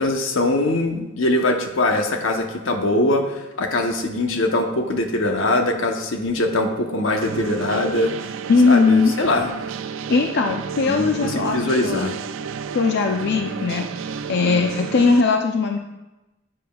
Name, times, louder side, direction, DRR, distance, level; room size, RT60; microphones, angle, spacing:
voice 1, 0.0-8.1 8.7-9.5 10.9-12.1, left 2 dB, 85° left, 4 dB, 0.9 m, -22 dB
sound 1, 7.2-15.2, right 6 dB, 75° right, 0.4 m, -31 dB
voice 2, 8.5-9.1 10.1-12.1 12.7-15.8, left 4 dB, 60° left, 4 dB, 0.5 m, -19 dB
10.0 x 7.6 x 2.3 m, 1.0 s
head